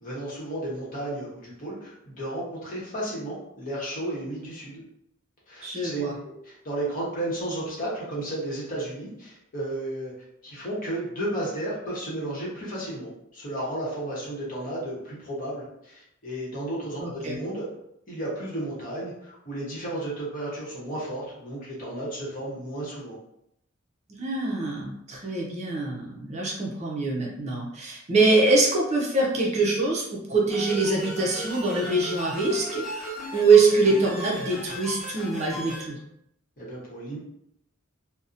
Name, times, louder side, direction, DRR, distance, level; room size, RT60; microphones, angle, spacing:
voice 1, 0.0-4.8 5.5-10.1 10.4-17.6 18.1-23.2 36.6-37.2, right 1 dB, 40° left, -6 dB, 0.9 m, -33 dB
voice 2, 5.6-6.1 17.0-17.4 24.2-36.0, right 3 dB, 35° right, -3 dB, 0.4 m, -24 dB
sound 1, 30.5-35.8, equal, ahead, 1.0 m, -36 dB
2.7 x 2.0 x 2.5 m, 0.76 s
head